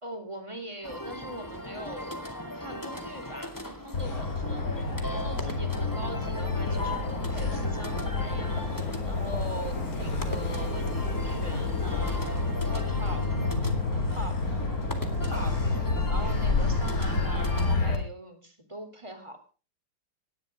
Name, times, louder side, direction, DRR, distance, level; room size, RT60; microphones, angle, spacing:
voice 1, 0.0-2.3 2.5-4.7 5.1-13.5 14.1-14.4 15.2-15.6 16.1-19.4, right 1 dB, 15° right, 7 dB, 3.5 m, -42 dB
sound 1, 0.8-17.8, left 1 dB, 10° left, 2.2 m, -39 dB
Motor vehicle (road), 3.9-18.0, left 3 dB, 40° left, 3.5 m, -29 dB
18.0 x 12.0 x 5.2 m, 0.36 s
omnidirectional pair, 2.3 m